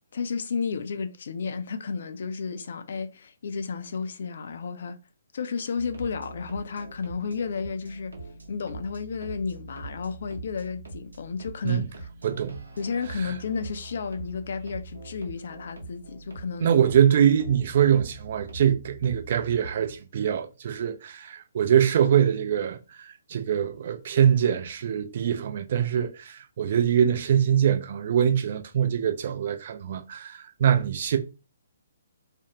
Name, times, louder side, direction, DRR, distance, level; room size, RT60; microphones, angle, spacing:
voice 1, 0.1-5.0 5.3-8.2 8.5-11.8 12.8-16.8, left 5 dB, 50° left, 0.3 m, -32 dB
sound 1, 5.7-20.0, right 3 dB, 70° right, 0.9 m, -43 dB
voice 2, 12.2-12.6 13.2-13.3 16.6-31.2, right 9 dB, 45° right, 0.4 m, -23 dB
2.5 x 2.0 x 2.8 m
figure-of-eight pair, 130°, 0 cm